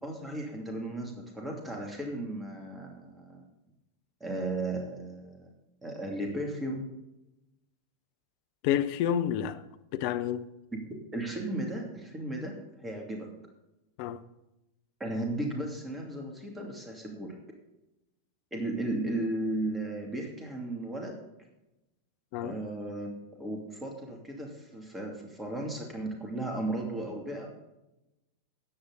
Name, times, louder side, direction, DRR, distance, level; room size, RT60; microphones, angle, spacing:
voice 1, 0.0-3.4 4.2-5.5 5.8-6.8 10.7-10.8 11.1-13.3 15.0-17.4 18.5-21.2 22.4-23.1 23.4-27.5, right 1 dB, 10° right, 2.7 m, -35 dB
voice 2, 8.6-9.6 9.9-10.4 14.0-14.2 22.3-22.6, left 10 dB, 45° left, 0.8 m, -29 dB
13.5 x 9.7 x 4.0 m
figure-of-eight pair, 90°, 0 cm